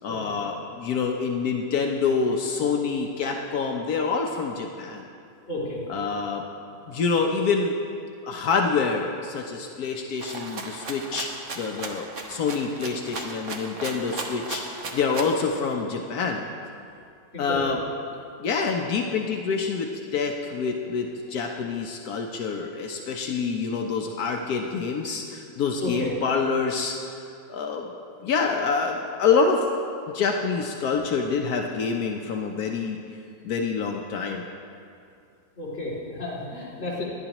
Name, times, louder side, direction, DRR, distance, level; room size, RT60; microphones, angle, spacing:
voice 1, 0.0-5.0 5.9-6.5 6.9-7.7 8.2-11.3 11.5-16.4 17.4-17.8 18.4-27.1 27.5-27.9 28.2-29.7 30.1-33.0 33.4-34.4, left 5 dB, 75° left, 2 dB, 1.2 m, -26 dB
voice 2, 5.5-5.8 17.3-17.6 25.8-26.1 35.6-37.0, left 1 dB, 50° left, -8 dB, 3.0 m, -32 dB
Rattle (instrument), 10.2-15.4, right 3 dB, 55° right, 1.3 m, -36 dB
19.0 x 11.5 x 3.0 m, 2.5 s
omnidirectional pair, 1.7 m